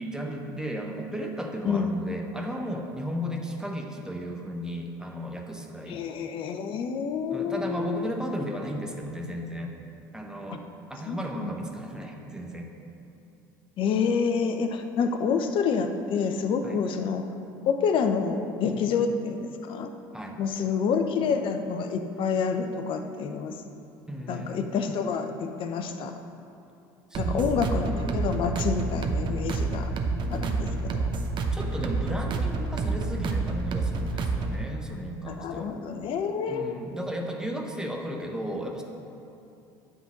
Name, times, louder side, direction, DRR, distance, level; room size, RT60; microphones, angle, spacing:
voice 1, 0.0-6.0 7.3-9.7 10.1-12.7 16.6-16.8 18.6-18.8 20.1-20.4 24.1-24.6 27.1-28.0 30.2-30.7 31.5-35.7 36.5-38.8, equal, 5° right, 1 dB, 1.2 m, -35 dB
voice 2, 5.9-8.1 11.1-11.5 13.8-17.2 17.6-19.9 20.4-23.6 24.3-26.2 27.2-29.9 30.3-31.1 35.3-36.8, left 6 dB, 55° left, 7 dB, 0.8 m, -28 dB
sound 1, 27.1-34.7, right 3 dB, 50° right, 0.9 m, -28 dB
9.3 x 4.0 x 7.2 m, 2.7 s
hypercardioid pair, 75°, 10 cm